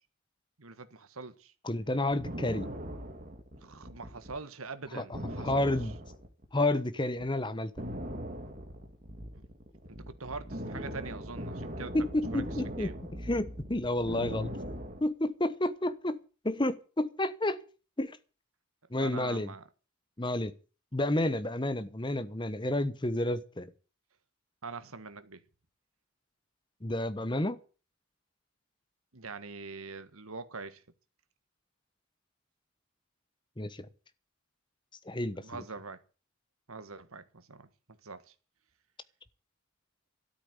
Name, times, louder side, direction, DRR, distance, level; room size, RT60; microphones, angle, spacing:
voice 1, 0.6-1.5 3.6-5.7 9.3-9.4 9.9-11.9 12.3-12.4 12.8-13.0 19.0-19.6 24.6-25.4 29.1-30.8 35.4-36.0 36.7-38.3, right 4 dB, 75° right, 1.6 m, -43 dB
voice 2, 1.6-2.7 4.9-5.9 6.5-7.7 11.9-12.9 13.3-14.5 15.0-16.2 16.4-17.6 18.0-18.2 18.9-19.5 20.2-20.5 20.9-23.7 26.8-27.6 33.6-33.9 35.0-35.6, left 1 dB, 20° left, 1.0 m, -30 dB
sound 1, 1.9-4.4 4.7-4.8 5.1-6.8 7.2-7.3 7.8-15.0, equal, 35° right, 2.5 m, -40 dB
13.0 x 8.4 x 9.7 m
head